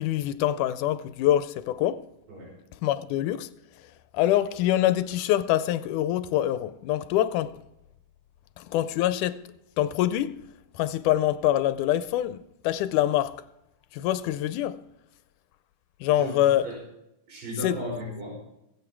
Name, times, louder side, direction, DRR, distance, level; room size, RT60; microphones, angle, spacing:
voice 1, 0.0-2.1 2.8-3.5 4.1-7.6 8.6-9.4 9.8-10.4 10.8-13.4 13.9-14.8 16.0-16.7 17.6-17.8, left 13 dB, 80° left, 2.0 m, -25 dB
voice 2, 16.1-16.8 17.3-18.3, equal, 85° right, 7.2 m, -36 dB
21.5 x 8.2 x 4.6 m
omnidirectional pair, 3.8 m